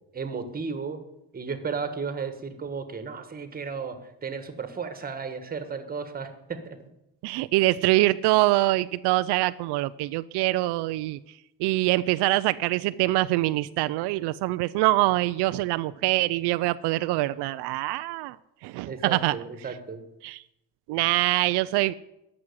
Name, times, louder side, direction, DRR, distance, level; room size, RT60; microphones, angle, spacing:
voice 1, 0.1-1.0 1.3-4.0 4.2-6.8 18.9-20.0, right 5 dB, 20° right, 9 dB, 1.5 m, -34 dB
voice 2, 7.2-11.2 11.6-18.4 18.6-19.3 20.2-20.4 20.9-21.9, right 18 dB, 80° right, 14 dB, 0.5 m, -24 dB
13.5 x 6.3 x 9.6 m, 0.87 s
cardioid pair, 140°, 40 cm